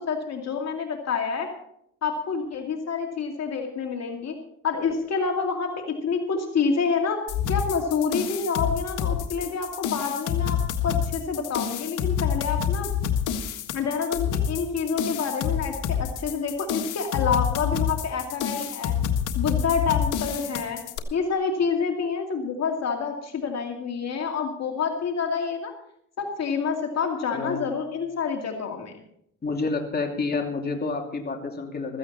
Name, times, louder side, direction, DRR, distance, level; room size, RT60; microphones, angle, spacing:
voice 1, 0.1-1.5 2.0-4.3 4.6-7.2 7.5-12.9 13.7-18.9 19.3-20.8 21.1-25.7 26.2-28.9, left 5 dB, 60° left, 2 dB, 2.5 m, -27 dB
sound 1, 7.3-21.0, left 8 dB, 85° left, 1.6 m, -28 dB
voice 2, 27.3-27.6 29.4-32.0, left 3 dB, 30° left, 2 dB, 2.8 m, -29 dB
16.0 x 14.5 x 4.2 m, 0.71 s
cardioid pair, 90°, 30 cm